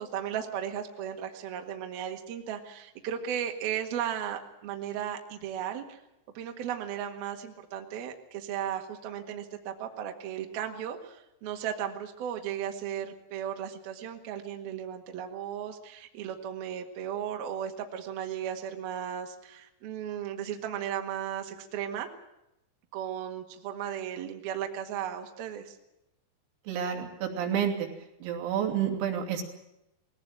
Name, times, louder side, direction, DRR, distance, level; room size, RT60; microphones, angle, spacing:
voice 1, 0.0-6.0 6.3-22.1 22.9-25.8, right 9 dB, 60° right, 3 dB, 3.1 m, -35 dB
voice 2, 26.7-27.9 28.2-29.4, right 8 dB, 85° right, 2 dB, 5.4 m, -29 dB
21.0 x 17.5 x 9.0 m, 0.87 s
omnidirectional pair, 5.9 m